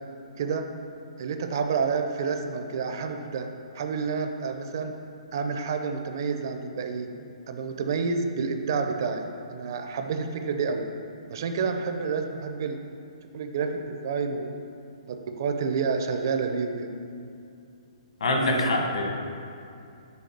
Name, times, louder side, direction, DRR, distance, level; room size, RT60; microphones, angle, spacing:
voice 1, 1.2-3.5 3.7-5.0 5.3-7.1 7.5-9.2 9.5-10.9 11.3-12.8 13.3-14.6 15.4-16.9, right 5 dB, 35° right, 6 dB, 0.5 m, -29 dB
voice 2, 18.2-19.1, left 1 dB, 65° left, 2 dB, 1.3 m, -24 dB
6.4 x 4.7 x 6.7 m, 2.5 s
hypercardioid pair, 180°, 4 cm